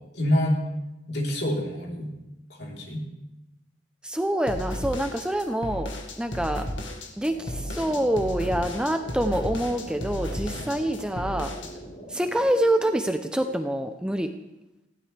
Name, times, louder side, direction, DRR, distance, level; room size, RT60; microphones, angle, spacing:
voice 1, 0.1-0.6 1.1-2.1 2.5-3.0 10.6-10.7, equal, 60° left, -2 dB, 3.8 m, -26 dB
voice 2, 4.0-5.9 6.2-6.7 7.2-11.5 12.1-14.3, right 1 dB, 5° right, 6 dB, 0.7 m, -26 dB
sound 1, 4.5-11.7, equal, 85° left, 1.9 m, -34 dB
sound 2, 7.3-13.6, equal, 35° left, 3.6 m, -43 dB
20.0 x 15.5 x 3.4 m, 0.95 s
head